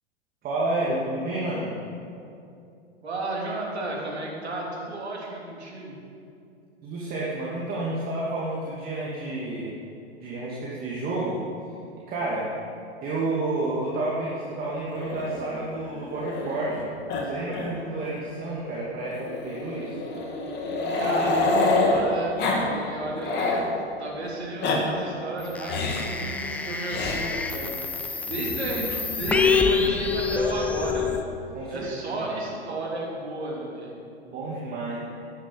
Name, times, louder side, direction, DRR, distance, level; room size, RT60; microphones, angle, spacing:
voice 1, 0.4-1.7 6.8-9.7 10.2-11.4 12.1-12.5 13.0-16.9 17.2-20.0 31.5-32.3 34.3-35.0, right 2 dB, 30° right, -6 dB, 2.5 m, -30 dB
voice 2, 3.0-6.0 20.9-23.4 24.0-31.2 31.7-33.9, right 2 dB, 80° right, -2 dB, 3.6 m, -33 dB
Growling, 14.9-16.8 17.1-17.2 17.5-17.7 18.0-18.1 19.1-22.0 22.4-22.6 23.0-23.7 24.4-24.8 25.7-26.1 26.9-27.2 28.3-29.0, left 3 dB, 30° left, 2.6 m, -27 dB
sound 1, 25.5-31.2, left 5 dB, 5° left, 0.3 m, -26 dB
12.0 x 10.0 x 7.4 m, 2.5 s
figure-of-eight pair, 105°, 32 cm